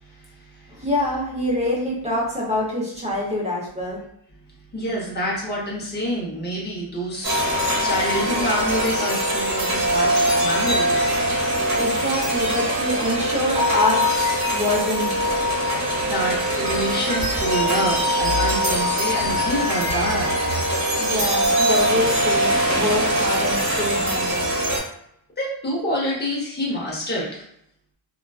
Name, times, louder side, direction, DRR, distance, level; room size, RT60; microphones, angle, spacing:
voice 1, 0.0-0.8 4.7-11.2 16.0-20.3 25.4-27.4, equal, 20° left, -5 dB, 0.7 m, -27 dB
voice 2, 0.7-4.0 11.8-14.3 14.5-15.1 21.0-24.5, left 1 dB, 15° right, -5 dB, 0.7 m, -25 dB
sound 1, 7.2-24.8, equal, 35° right, 1.1 m, -22 dB
2.3 x 2.3 x 2.3 m, 0.74 s
cardioid pair, 145°, 50 cm